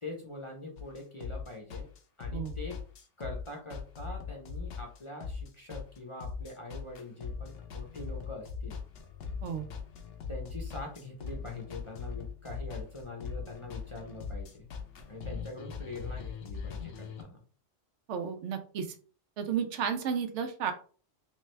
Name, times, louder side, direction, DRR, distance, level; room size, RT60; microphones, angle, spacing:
voice 1, 0.0-1.9 2.2-2.8 3.2-8.8 10.3-14.7 15.1-17.4, left 2 dB, 30° left, 0 dB, 0.7 m, -43 dB
sound 1, 0.8-17.2, left 5 dB, 70° left, 1.0 m, -40 dB
voice 2, 18.1-18.9 19.4-20.7, right 7 dB, 70° right, 7 dB, 0.8 m, -32 dB
3.3 x 3.2 x 3.2 m, 0.41 s
omnidirectional pair, 1.3 m